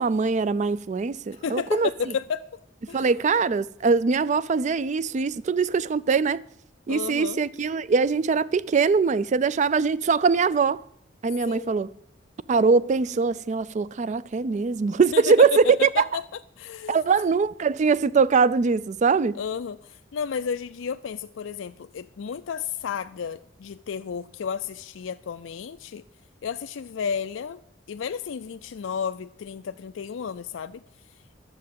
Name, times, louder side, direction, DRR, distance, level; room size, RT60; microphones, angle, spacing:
voice 1, 0.0-1.9 2.9-6.4 6.9-10.8 11.2-11.9 12.5-16.0 16.9-19.4, right 5 dB, 40° right, 0.4 m, -22 dB
voice 2, 1.4-2.4 2.9-3.1 6.9-7.4 11.5-11.8 15.1-16.2 16.6-17.0 19.3-26.0 26.4-27.6 27.9-30.8, left 6 dB, 90° left, 0.4 m, -32 dB
11.5 x 7.5 x 7.5 m
head